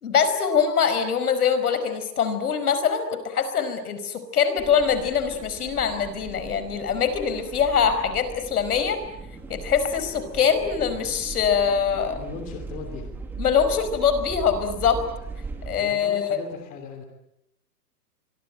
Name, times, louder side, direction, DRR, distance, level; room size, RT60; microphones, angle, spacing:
voice 1, 0.0-9.0 9.5-12.2 13.4-15.0 15.7-16.4, left 7 dB, 65° left, 11 dB, 5.2 m, -23 dB
sound 1, 4.6-15.8, right 3 dB, 5° right, 1.4 m, -38 dB
voice 2, 12.1-13.1 15.8-17.0, left 5 dB, 15° left, 4 dB, 2.9 m, -38 dB
25.5 x 24.5 x 9.1 m, 0.81 s
hypercardioid pair, 180°, 48 cm